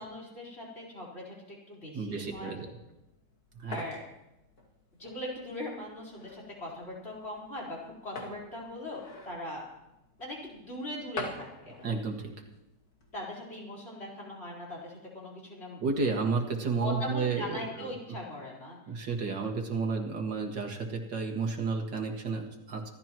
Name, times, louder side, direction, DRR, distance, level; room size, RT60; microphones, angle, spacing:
voice 1, 0.0-2.5 3.7-4.0 5.0-7.8 8.0-9.6 10.2-11.5 13.1-15.8 16.8-18.8, left 1 dB, 35° left, -3 dB, 4.6 m, -40 dB
voice 2, 1.9-2.7 3.6-3.8 11.8-12.3 15.8-17.9 18.9-22.9, right 4 dB, 80° right, 2 dB, 2.6 m, -32 dB
sound 1, 2.8-13.3, left 2 dB, 55° left, 2.6 m, -46 dB
26.0 x 13.0 x 3.0 m, 0.93 s
omnidirectional pair, 1.9 m